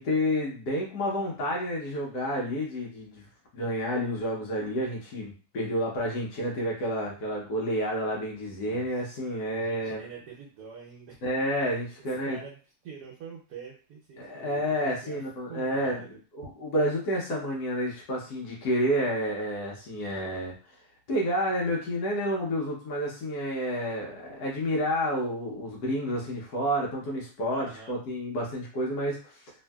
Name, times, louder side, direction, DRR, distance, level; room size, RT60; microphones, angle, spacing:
voice 1, 0.0-3.3 3.5-10.0 11.2-12.4 14.2-16.0 16.4-20.7 21.1-29.5, equal, 75° left, -2 dB, 1.3 m, -30 dB
voice 2, 8.6-9.0 9.5-11.2 12.2-15.2 15.5-16.2 27.5-28.0, right 6 dB, 75° right, -2 dB, 1.2 m, -46 dB
3.0 x 2.7 x 2.2 m, 0.37 s
omnidirectional pair, 1.7 m